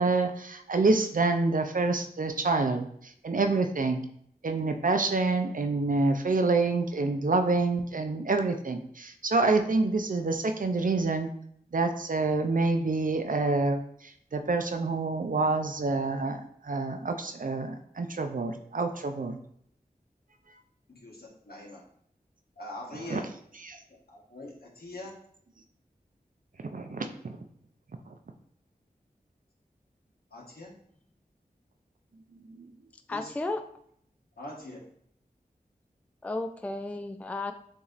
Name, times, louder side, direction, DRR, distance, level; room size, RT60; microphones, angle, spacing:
voice 1, 0.0-2.9 3.2-4.0 4.4-11.3 11.7-13.8 14.3-19.4 22.9-23.2 23.6-23.8 26.7-27.4 32.6-32.7, right 3 dB, 60° right, 7 dB, 0.5 m, -27 dB
voice 2, 20.9-21.8 22.6-23.3 24.1-25.1 30.3-30.7 33.1-33.3 34.4-34.8, left 1 dB, 75° left, -3 dB, 1.2 m, -42 dB
voice 3, 33.1-33.6 36.2-37.5, left 2 dB, 10° left, 7 dB, 0.3 m, -33 dB
7.0 x 2.8 x 2.5 m, 0.67 s
wide cardioid pair, 50°, 16 cm